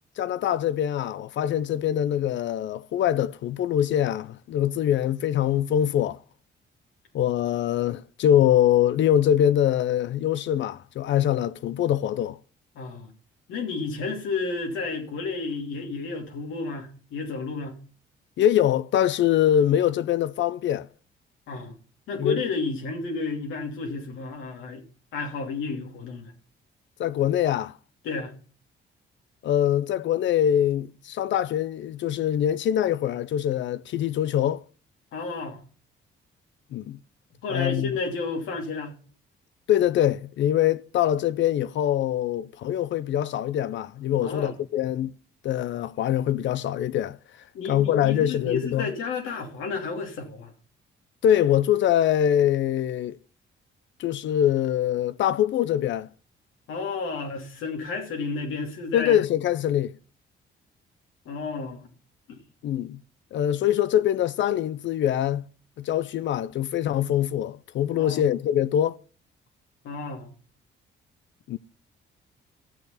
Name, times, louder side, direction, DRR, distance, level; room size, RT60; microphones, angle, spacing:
voice 1, 0.2-6.2 7.1-12.4 18.4-20.9 22.2-22.4 27.0-27.7 29.4-34.6 36.7-37.0 37.5-37.9 39.7-45.1 45.4-47.2 47.7-48.9 51.2-53.2 54.0-56.1 58.9-59.9 62.6-63.0 63.3-65.5 65.8-69.0 71.5-71.6, left 10 dB, 70° left, 0.6 m, -23 dB
voice 2, 12.7-13.1 13.5-17.8 21.5-21.7 22.1-24.8 25.1-26.3 28.0-28.3 35.1-35.6 37.4-39.0 44.2-44.5 47.5-50.5 56.7-59.2 61.2-61.8 62.3-62.4 68.0-68.3 69.8-70.3, left 4 dB, 85° left, 2.9 m, -31 dB
15.0 x 6.7 x 5.6 m
cardioid pair, 90°, 20 cm